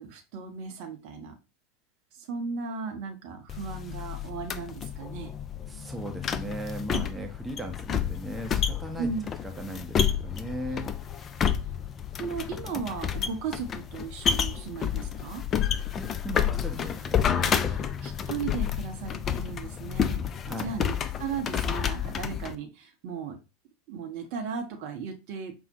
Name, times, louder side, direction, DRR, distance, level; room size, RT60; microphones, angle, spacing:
voice 1, 0.0-1.3 2.2-5.3 6.9-7.0 9.0-9.3 12.2-15.4 17.4-23.4 23.9-25.5, right 5 dB, 55° right, 4 dB, 0.6 m, -36 dB
sound 1, 3.5-22.6, left 8 dB, 30° left, 0.3 m, -30 dB
voice 2, 5.7-9.1 9.4-10.9 16.0-17.8 20.4-20.7, right 1 dB, 10° right, 3 dB, 0.6 m, -38 dB
5.3 x 2.0 x 2.6 m, 0.28 s
figure-of-eight pair, 80°, 0 cm